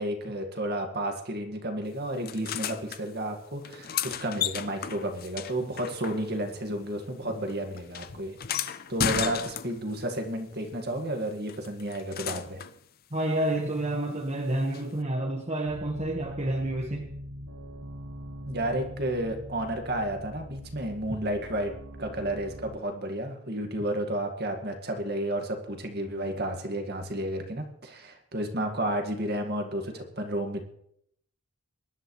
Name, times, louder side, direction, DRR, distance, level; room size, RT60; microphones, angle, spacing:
voice 1, 0.0-12.6 18.5-21.7 22.0-30.6, right 1 dB, 45° right, 4 dB, 1.9 m, -32 dB
sound 1, 2.3-3.0 3.6-6.6 6.9-10.0 11.5-12.8 14.7-14.8, left 8 dB, 40° left, 0.5 m, -34 dB
voice 2, 13.1-17.1, right 1 dB, 30° right, 0 dB, 1.4 m, -29 dB
sound 2, 15.7-22.8, equal, 85° right, 1.9 m, -42 dB
22.5 x 11.5 x 3.2 m, 0.71 s
head